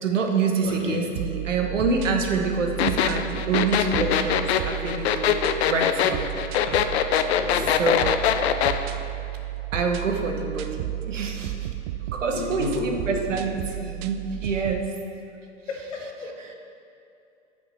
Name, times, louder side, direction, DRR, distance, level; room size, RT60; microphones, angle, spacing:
voice 1, 0.0-5.3 5.7-6.2 7.5-8.1 9.7-11.5 12.1-14.9 16.4-16.5, right 4 dB, 85° right, 3 dB, 1.2 m, -26 dB
voice 2, 0.6-1.0 6.3-6.8 7.4-7.8 12.3-13.2 15.7-16.3, left 4 dB, 75° left, -1 dB, 1.7 m, -32 dB
sound 1, 1.2-14.9, right 15 dB, 40° right, 0.4 m, -33 dB
sound 2, 2.8-8.8, left 10 dB, 60° left, 0.6 m, -22 dB
8.7 x 5.9 x 5.7 m, 2.6 s
hypercardioid pair, 115°, 37 cm